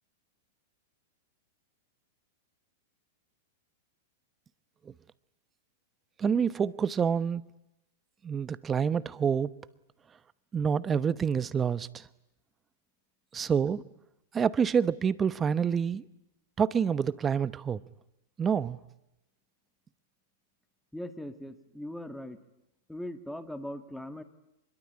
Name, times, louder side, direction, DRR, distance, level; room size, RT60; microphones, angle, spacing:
voice 1, 6.2-7.5 8.2-9.5 10.5-12.1 13.3-13.8 14.3-16.0 16.6-17.8 18.4-18.8, right 7 dB, 20° right, 1.0 m, -27 dB
voice 2, 20.9-22.4 22.9-24.2, left 1 dB, ahead, 2.1 m, -40 dB
24.5 x 22.0 x 10.0 m
hypercardioid pair, 120°, 0 cm